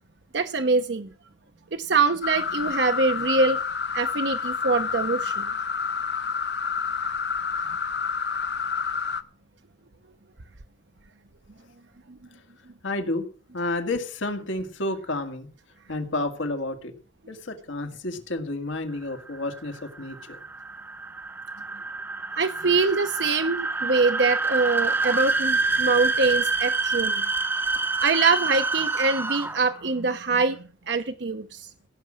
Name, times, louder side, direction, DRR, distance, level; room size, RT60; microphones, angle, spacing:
voice 1, 0.3-1.1 1.7-3.6 3.9-5.5 22.4-27.3 28.0-31.7, right 4 dB, 70° right, 7 dB, 0.8 m, -24 dB
sound 1, 2.2-9.2, left 6 dB, 60° left, 0.8 m, -29 dB
voice 2, 12.8-13.3 13.5-15.5 15.9-16.9 17.3-20.4, left 2 dB, 85° left, 5 dB, 1.8 m, -30 dB
sound 2, 19.1-29.8, right 3 dB, 10° right, 0.7 m, -27 dB
16.5 x 6.1 x 7.6 m, 0.40 s
head